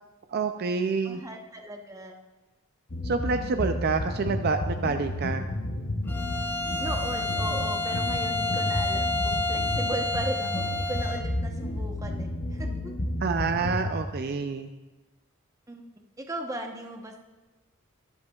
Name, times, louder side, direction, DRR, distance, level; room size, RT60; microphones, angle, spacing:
voice 1, 0.3-1.2 3.0-5.5 13.2-14.7, right 4 dB, 50° right, 7 dB, 0.4 m, -28 dB
voice 2, 1.0-2.1 3.4-3.5 6.8-12.9 15.7-15.8 16.2-17.2, right 1 dB, 15° right, 3 dB, 0.9 m, -37 dB
sound 1, 2.9-14.0, left 1 dB, 50° left, 0.8 m, -31 dB
Bowed string instrument, 6.1-11.3, left 3 dB, 10° left, 0.4 m, -30 dB
21.5 x 7.9 x 2.4 m, 1.2 s
head